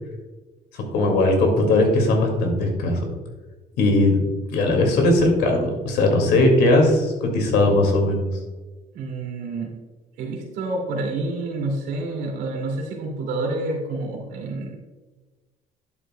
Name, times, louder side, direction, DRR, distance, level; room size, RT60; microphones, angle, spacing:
voice 1, 0.9-3.0 3.8-4.2 4.5-8.3, left 2 dB, 80° left, 3 dB, 2.2 m, -19 dB
voice 2, 8.9-9.7 10.2-14.8, right 2 dB, 85° right, 0 dB, 2.4 m, -28 dB
11.5 x 8.0 x 2.2 m, 1.3 s
cardioid pair, 110°, 17 cm